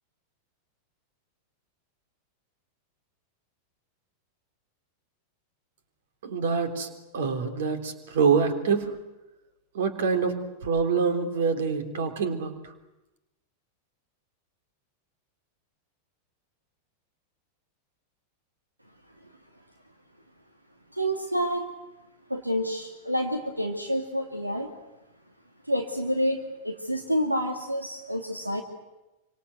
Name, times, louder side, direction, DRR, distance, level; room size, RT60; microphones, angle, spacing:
voice 1, 6.2-8.9 9.7-12.5, right 5 dB, 60° right, 7 dB, 3.6 m, -26 dB
voice 2, 20.9-21.7 22.3-24.7 25.7-28.6, equal, 85° right, 4 dB, 2.3 m, -28 dB
28.0 x 25.5 x 8.1 m, 0.98 s
figure-of-eight pair, 90°, 0 cm